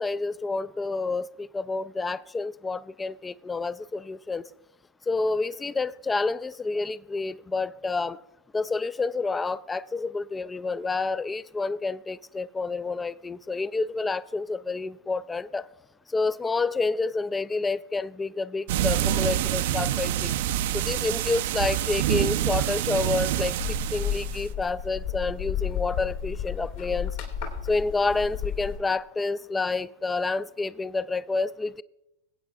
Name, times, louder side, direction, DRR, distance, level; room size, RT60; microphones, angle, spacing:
voice 1, 0.0-4.5 5.1-8.2 8.5-15.7 16.1-20.3 20.7-23.6 23.9-27.2 27.7-31.8, left 3 dB, 15° left, 0.3 m, -29 dB
sound 1, 18.7-24.5, right 11 dB, 60° right, 0.4 m, -26 dB
sound 2, 23.6-28.8, left 9 dB, 60° left, 2.5 m, -32 dB
22.0 x 8.7 x 2.3 m
figure-of-eight pair, 95°, 0 cm